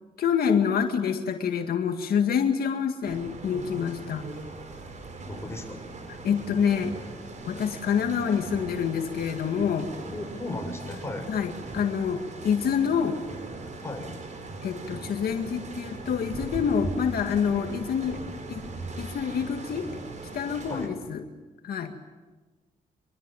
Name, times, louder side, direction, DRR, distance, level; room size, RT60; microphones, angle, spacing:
voice 1, 0.2-4.3 6.2-6.9 7.4-9.9 11.3-13.2 14.6-18.2 18.5-18.7 19.0-19.9 20.3-21.2 21.6-21.9, left 7 dB, 85° left, 5 dB, 2.0 m, -27 dB
sound 1, 3.0-20.9, right 3 dB, 50° right, 4.8 m, -39 dB
voice 2, 5.3-5.8 10.1-11.3 13.8-14.1 20.7-20.9, left 2 dB, 15° left, 3 dB, 6.7 m, -35 dB
24.5 x 24.0 x 9.1 m, 1.2 s
cardioid pair, 105°, 15 cm